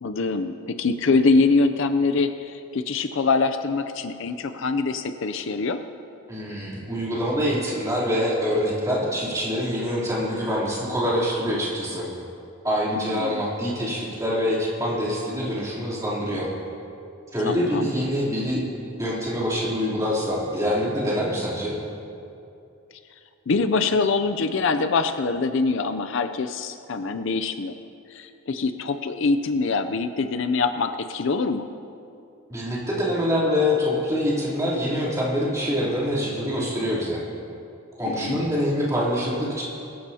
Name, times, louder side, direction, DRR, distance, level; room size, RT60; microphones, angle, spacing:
voice 1, 0.0-5.8 13.0-13.4 17.4-17.9 23.5-27.7 28.1-31.7 38.0-38.4, left 4 dB, 60° left, 9 dB, 0.5 m, -24 dB
voice 2, 6.3-12.1 12.6-16.5 17.3-18.6 19.0-21.8 32.5-37.2 38.0-39.6, equal, 15° right, -7 dB, 3.2 m, -25 dB
22.5 x 13.0 x 2.8 m, 2.6 s
head